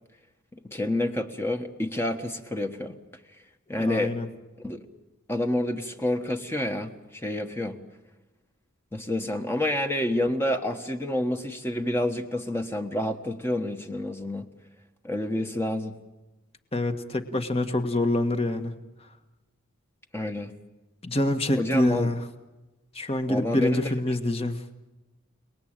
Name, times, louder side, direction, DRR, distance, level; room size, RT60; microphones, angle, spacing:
voice 1, 0.7-2.9 3.7-4.1 4.6-4.8 5.3-6.9 7.2-7.8 8.9-14.5 15.0-16.0 20.1-20.5 21.5-22.1 23.3-23.9, left 1 dB, 10° left, 5 dB, 1.3 m, -28 dB
voice 2, 3.8-4.3 16.7-18.7 21.0-22.2 22.9-24.6, left 1 dB, 25° left, 7 dB, 1.6 m, -26 dB
30.0 x 20.0 x 9.0 m, 1.1 s
head